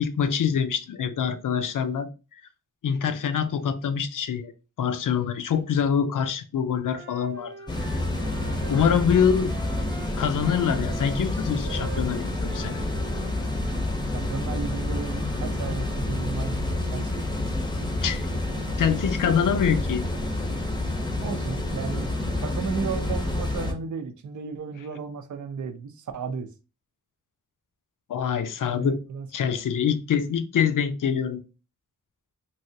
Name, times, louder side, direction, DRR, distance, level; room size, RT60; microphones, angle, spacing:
voice 1, 0.0-2.1 2.8-4.5 4.8-7.5 7.9-8.0 8.7-9.5 10.2-12.8 18.0-18.2 18.8-20.1 28.1-29.0 29.3-31.4, left 7 dB, 80° left, 0.5 m, -25 dB
Wind instrument woodwind instrument, 6.9-13.9, right 4 dB, 35° right, 0.8 m, -44 dB
sound 1, 7.7-23.7, left 1 dB, 15° left, 0.6 m, -28 dB
voice 2, 14.1-17.3 21.2-22.1 22.4-26.5 28.7-29.5, right 5 dB, 70° right, 0.5 m, -34 dB
3.2 x 2.7 x 2.7 m
wide cardioid pair, 85°, 31 cm